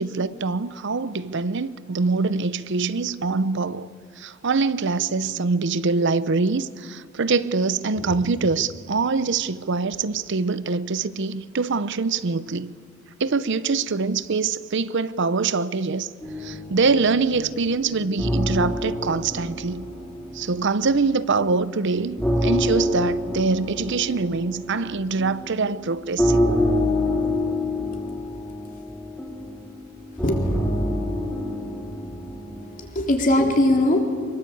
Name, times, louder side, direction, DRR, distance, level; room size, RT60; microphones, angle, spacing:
voice 1, 0.0-3.9 4.2-12.7 13.2-16.1 16.4-19.9 20.3-26.4, right 4 dB, 60° right, 0.7 m, -24 dB
sound 1, 16.2-20.9 21.3-32.9, left 1 dB, 5° left, 4.7 m, -27 dB
voice 2, 30.2-30.6 32.8-34.0, left 1 dB, 40° left, 3.6 m, -21 dB
24.5 x 22.5 x 8.5 m
head